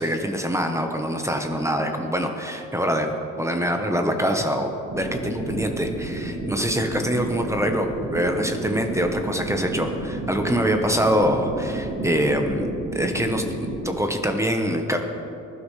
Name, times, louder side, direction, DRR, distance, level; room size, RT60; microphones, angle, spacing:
voice 1, 0.0-3.1 3.4-15.0, equal, 10° right, 4 dB, 1.1 m, -24 dB
sound 1, 4.9-13.9, right 2 dB, 85° right, 2.2 m, -31 dB
19.0 x 12.0 x 3.3 m, 2.9 s
cardioid pair, 90°, 30 cm